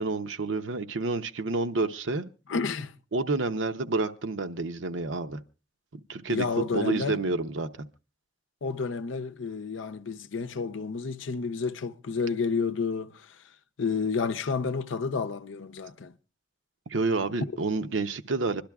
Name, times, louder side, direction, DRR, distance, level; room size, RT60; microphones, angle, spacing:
voice 1, 0.0-2.3 3.1-5.4 5.9-6.5 6.7-7.7 16.9-18.6, right 3 dB, 80° right, 0.7 m, -29 dB
voice 2, 2.5-3.0 6.3-7.2 8.6-13.4 13.8-16.1 17.4-17.5, left 5 dB, 85° left, 0.6 m, -30 dB
25.5 x 12.0 x 2.3 m
head